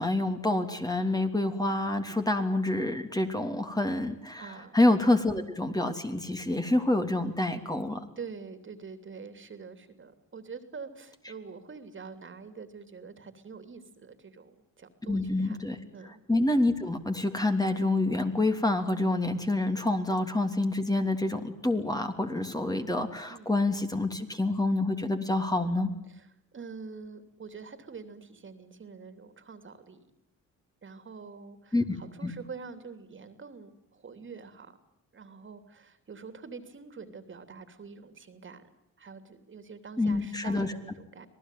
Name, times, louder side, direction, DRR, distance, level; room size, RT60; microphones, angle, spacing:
voice 1, 0.0-8.0 15.0-15.8 16.3-25.9 31.7-32.0 32.2-32.3 40.0-40.7, left 2 dB, 10° left, 5 dB, 3.0 m, -27 dB
voice 2, 4.4-4.8 8.2-16.1 23.3-23.5 26.1-26.3 26.5-30.1 30.8-34.8 35.1-38.6 39.0-41.3, right 5 dB, 40° right, 9 dB, 3.2 m, -45 dB
26.5 x 18.5 x 9.3 m, 0.82 s
cardioid pair, 90°, 30 cm